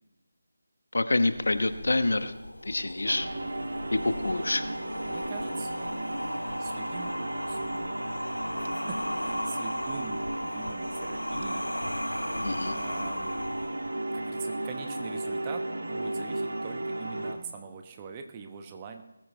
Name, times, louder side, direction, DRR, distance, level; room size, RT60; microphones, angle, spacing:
voice 1, 0.9-2.3 2.6-3.3 3.9-4.6 12.4-12.7, left 2 dB, 65° left, 11 dB, 1.1 m, -27 dB
sound 1, 1.2-14.2, left 1 dB, 85° left, 0.5 m, -37 dB
sound 2, 3.0-17.3, right 1 dB, 70° right, 2.1 m, -34 dB
voice 2, 5.0-5.9 6.6-7.1 7.5-7.9 8.6-11.7 12.7-13.3 14.1-19.0, right 6 dB, 20° right, 5 dB, 1.1 m, -43 dB
19.5 x 14.5 x 3.2 m, 0.97 s
figure-of-eight pair, 160°, 0 cm